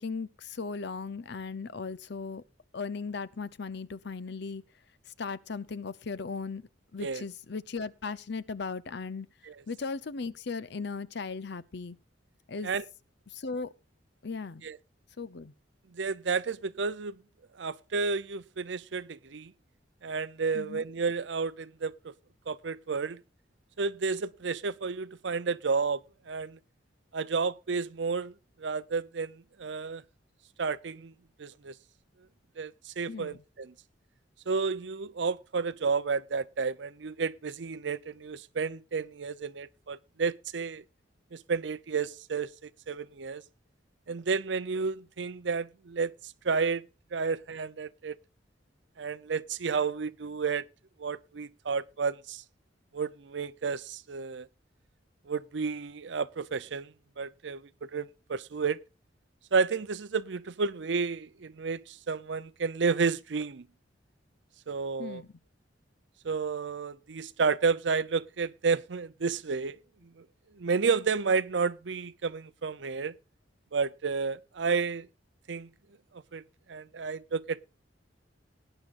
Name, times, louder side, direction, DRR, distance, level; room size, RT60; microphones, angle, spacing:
voice 1, 0.0-2.4 2.7-4.6 5.1-9.3 9.7-12.0 12.5-12.7 13.3-13.7 14.2-14.7 15.2-15.5 20.5-20.9 33.1-33.4 65.0-65.3, left 4 dB, 65° left, 0.7 m, -37 dB
voice 2, 15.9-17.1 17.6-19.5 20.0-22.1 22.5-23.2 23.8-26.6 27.1-28.3 28.6-30.0 30.6-31.1 31.4-31.7 32.6-33.7 34.5-40.8 41.3-43.4 44.1-46.1 46.4-46.8 47.1-48.2 49.0-50.6 51.0-52.4 52.9-54.5 55.3-58.8 59.5-63.7 64.7-65.2 66.2-69.8 70.6-73.2 73.7-75.1 75.5-75.7 76.3-76.4 76.7-77.6, right 5 dB, 70° right, 0.6 m, -31 dB
18.5 x 10.0 x 2.5 m
head